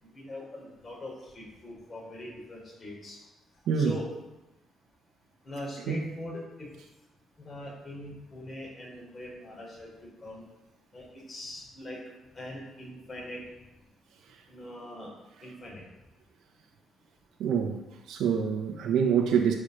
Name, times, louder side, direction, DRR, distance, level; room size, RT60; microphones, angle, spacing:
voice 1, 0.0-3.2 3.8-4.0 5.4-6.7 7.4-10.4 10.9-12.0 12.3-13.4 14.5-15.1 15.4-15.8, left 1 dB, 35° left, -3 dB, 3.8 m, -42 dB
voice 2, 3.7-4.0 5.9-6.0 17.4-17.8 18.1-19.5, right 7 dB, 80° right, 0 dB, 1.1 m, -25 dB
10.0 x 4.9 x 6.6 m, 0.99 s
cardioid pair, 90°, 0 cm